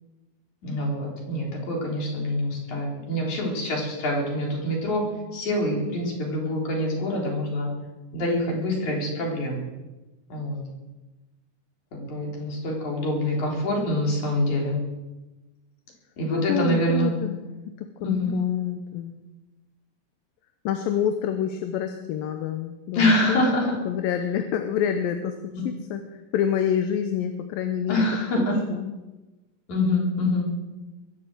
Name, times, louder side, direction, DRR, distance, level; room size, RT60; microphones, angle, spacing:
voice 1, 0.6-5.0 5.3-7.7 8.1-9.6 10.3-10.6 11.9-14.8 16.2-17.1 18.0-18.4 22.9-23.7 27.9-28.6 29.7-30.5, left 1 dB, 50° left, -1 dB, 5.1 m, -25 dB
voice 2, 16.3-17.5 17.8-19.1 20.6-23.6 23.9-28.1 28.3-28.9, left 9 dB, 75° left, 6 dB, 2.6 m, -28 dB
22.5 x 7.8 x 7.9 m, 1.1 s
omnidirectional pair, 4.3 m